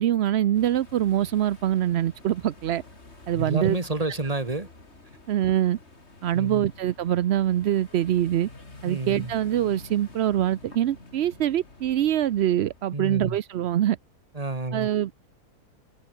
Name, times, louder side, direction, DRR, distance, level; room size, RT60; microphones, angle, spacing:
voice 1, 0.0-2.8 3.3-3.8 5.3-5.8 6.2-8.5 8.8-14.0 14.7-15.3, right 11 dB, 65° right, 0.6 m, -24 dB
sound 1, 0.5-13.0, left 3 dB, 40° left, 3.8 m, -48 dB
voice 2, 3.4-4.7 6.3-6.7 8.9-9.3 12.9-13.4 14.3-14.9, right 2 dB, 20° right, 2.4 m, -29 dB
omnidirectional pair, 1.7 m